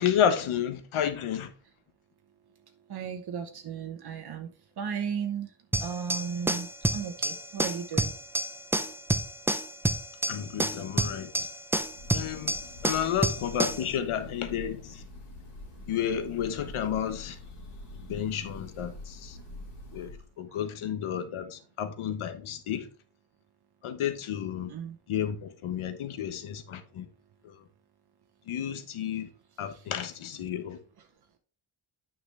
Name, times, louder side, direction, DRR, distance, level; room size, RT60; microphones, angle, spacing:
voice 1, 0.0-1.5 10.3-11.5 12.1-12.6 12.8-15.0 15.9-17.4 18.0-19.4 19.9-22.9 23.8-24.7 25.1-27.1 27.4-27.5 28.5-29.3 29.6-30.8, left 9 dB, 80° left, 1.2 m, -31 dB
voice 2, 2.9-4.5 4.8-5.5 5.8-8.1 13.0-13.2 20.5-20.6 24.7-25.0 29.7-29.9, right 7 dB, 50° right, 1.0 m, -35 dB
sound 1, 5.7-13.9, right 1 dB, 5° right, 0.3 m, -29 dB
Breathing / Bird, 11.8-20.3, left 2 dB, 55° left, 2.4 m, -45 dB
9.2 x 6.1 x 3.3 m
wide cardioid pair, 165°, 49 cm